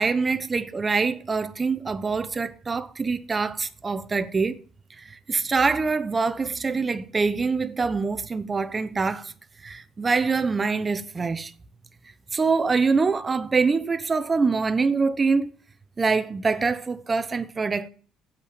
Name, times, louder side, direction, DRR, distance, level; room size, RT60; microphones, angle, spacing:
voice 1, 0.0-4.6 5.0-9.3 9.6-11.5 12.3-15.5 16.0-17.9, right 4 dB, 20° right, 0.9 m, -24 dB
8.9 x 7.7 x 8.7 m
cardioid pair, 135°, 0 cm